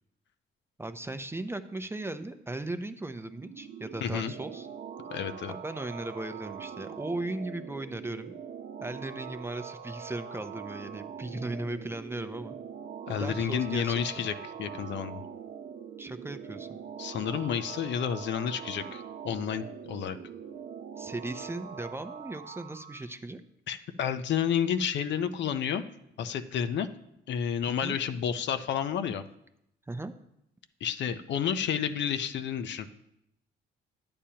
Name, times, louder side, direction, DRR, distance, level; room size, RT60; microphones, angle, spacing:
voice 1, 0.8-4.7 5.5-8.3 8.8-12.6 13.1-14.0 16.0-16.8 21.0-23.4 27.7-28.0 29.9-30.1, right 2 dB, 10° right, 9 dB, 0.5 m, -37 dB
sound 1, 3.1-23.0, right 7 dB, 60° right, 0.8 m, -43 dB
voice 2, 4.0-4.3 5.1-5.5 13.1-15.2 17.0-20.2 23.7-25.8 26.2-26.9 27.3-29.2 30.8-32.9, left 8 dB, 65° left, 10 dB, 0.6 m, -30 dB
9.9 x 8.6 x 2.9 m, 0.80 s
cardioid pair, 90°, 20 cm